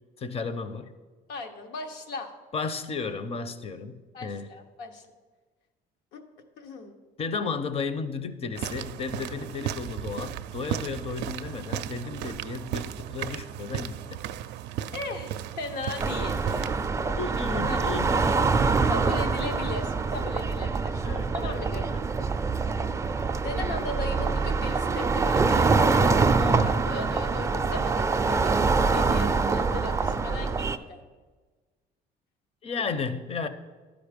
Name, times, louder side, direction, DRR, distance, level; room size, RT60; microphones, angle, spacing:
voice 1, 0.2-0.9 2.5-4.5 7.2-14.2 17.1-18.7 21.0-21.6 32.6-33.5, left 4 dB, 35° left, 11 dB, 0.6 m, -33 dB
voice 2, 1.3-2.3 4.1-5.1 6.1-6.2 6.6-7.0 14.9-16.5 17.6-17.8 18.9-21.0 21.3-21.9 23.2-31.0, left 3 dB, 85° left, 5 dB, 1.1 m, -37 dB
sound 1, 8.6-16.9, right 11 dB, 90° right, 0.4 m, -35 dB
sound 2, 16.0-30.8, right 4 dB, 20° right, 0.4 m, -25 dB
12.0 x 5.0 x 5.1 m, 1.3 s
cardioid pair, 110°, 17 cm